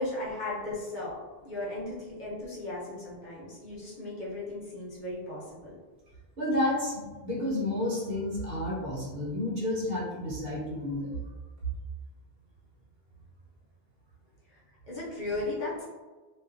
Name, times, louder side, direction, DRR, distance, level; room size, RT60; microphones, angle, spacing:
voice 1, 0.0-5.8 14.5-14.6 14.9-15.9, left 2 dB, 55° left, -7 dB, 0.8 m, -36 dB
voice 2, 6.4-11.2, left 1 dB, 70° right, -5 dB, 0.9 m, -31 dB
2.4 x 2.3 x 2.4 m, 1.3 s
omnidirectional pair, 1.0 m